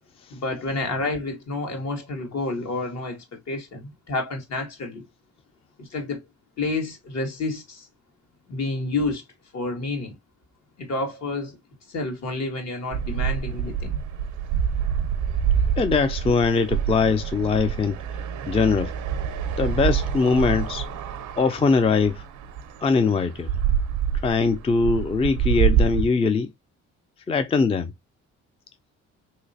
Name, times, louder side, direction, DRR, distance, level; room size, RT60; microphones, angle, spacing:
voice 1, 0.3-5.0 5.8-6.2 6.6-7.9 8.5-9.2 9.5-10.2 10.8-11.6 11.9-14.0, left 2 dB, 60° left, 1.5 m, -29 dB
sound 1, 12.9-26.1, right 7 dB, 85° right, 0.6 m, -26 dB
voice 2, 15.8-18.0 18.5-18.9 19.6-20.9 21.4-22.2 22.8-23.5 24.2-26.5 27.3-27.9, left 4 dB, 20° left, 0.4 m, -22 dB
3.2 x 2.9 x 2.6 m
cardioid pair, 90°, 30 cm